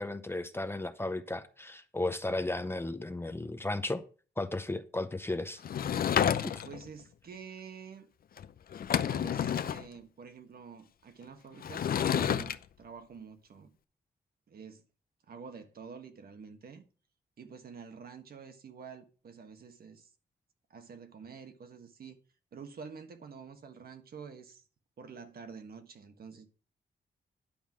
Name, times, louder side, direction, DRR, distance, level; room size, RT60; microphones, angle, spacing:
voice 1, 0.0-4.0 4.4-5.6, left 2 dB, 15° left, 0.7 m, -34 dB
Sliding door / Wood, 5.6-6.9 8.4-8.5 8.7-9.8 11.6-12.6, left 9 dB, 60° left, 0.6 m, -29 dB
voice 2, 6.6-8.1 8.9-13.7 14.5-14.8 15.3-16.8 17.4-20.1 20.7-22.2 22.5-24.6 25.0-26.5, right 6 dB, 60° right, 1.4 m, -48 dB
10.5 x 5.5 x 6.0 m
wide cardioid pair, 140°, 17 cm